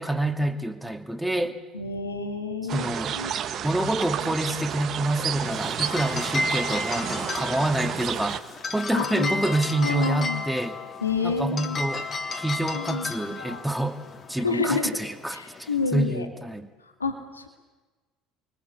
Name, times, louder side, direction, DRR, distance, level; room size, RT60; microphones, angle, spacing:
voice 1, 0.0-1.6 2.7-3.1 3.6-10.8 11.2-12.1 12.3-14.0 14.3-16.7, right 1 dB, 5° right, 6 dB, 2.6 m, -27 dB
voice 2, 1.7-2.9 3.1-3.3 8.9-9.4 9.8-10.5 11.0-11.8 12.7-13.6 14.4-15.0 15.3-16.3 17.0-17.5, left 4 dB, 85° left, 5 dB, 2.3 m, -29 dB
sound 1, 2.7-8.4, right 9 dB, 45° right, 1.7 m, -31 dB
sound 2, 5.5-15.9, left 3 dB, 35° left, 3.0 m, -34 dB
29.5 x 23.5 x 8.3 m, 1.2 s
figure-of-eight pair, 60°, 0 cm